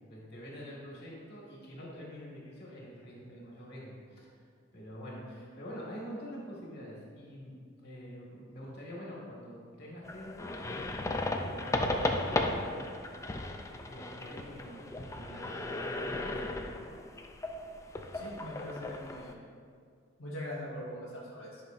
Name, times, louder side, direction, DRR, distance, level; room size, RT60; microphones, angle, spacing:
voice 1, 0.0-4.3 4.7-12.8 13.7-16.5, equal, 50° left, -4 dB, 1.9 m, -46 dB
sound 1, 10.0-19.3, left 2 dB, 15° left, 0.3 m, -35 dB
voice 2, 18.1-19.4 20.2-21.6, left 1 dB, 80° left, -7 dB, 1.1 m, -41 dB
10.0 x 5.6 x 2.6 m, 2.1 s
head